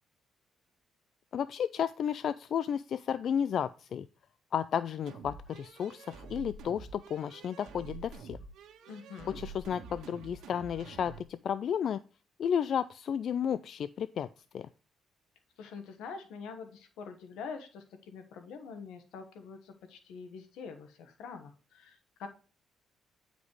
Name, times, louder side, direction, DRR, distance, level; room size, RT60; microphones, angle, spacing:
voice 1, 1.3-4.1 4.5-8.4 9.3-12.0 12.4-14.3 14.5-14.7, left 8 dB, 65° left, 15 dB, 0.3 m, -32 dB
sound 1, 5.1-11.2, right 4 dB, 80° right, 1.4 m, -48 dB
voice 2, 8.9-9.4 15.6-22.3, left 5 dB, 90° left, 7 dB, 1.3 m, -45 dB
9.6 x 5.1 x 3.1 m, 0.39 s
cardioid pair, 90°, 0 cm